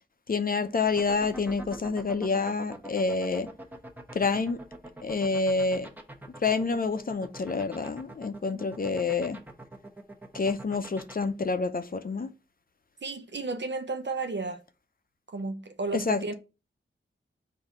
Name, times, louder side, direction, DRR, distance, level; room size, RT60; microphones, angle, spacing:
voice 1, 0.3-3.5 4.1-4.6 5.0-5.9 6.4-9.4 10.3-12.3 15.9-16.3, left 4 dB, 45° left, 0.5 m, -28 dB
sound 1, 0.9-11.2, right 1 dB, 10° right, 0.9 m, -43 dB
voice 2, 13.0-14.6 15.3-16.3, right 3 dB, 60° right, 0.8 m, -33 dB
4.0 x 2.7 x 4.8 m
cardioid pair, 50°, 21 cm